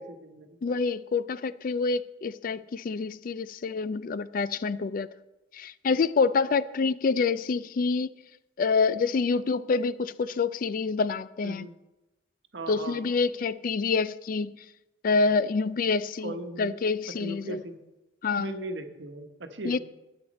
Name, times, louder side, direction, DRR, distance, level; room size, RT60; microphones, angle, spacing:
voice 1, 0.0-0.6 11.4-11.7 12.5-13.0 16.2-16.8 17.1-17.8 18.4-19.8, right 1 dB, 75° right, 1.1 m, -38 dB
voice 2, 0.6-5.1 5.5-8.1 8.6-11.7 12.7-14.6 15.0-17.6 18.2-18.6 19.6-19.8, left 4 dB, 50° left, 0.4 m, -27 dB
12.5 x 9.4 x 4.1 m
head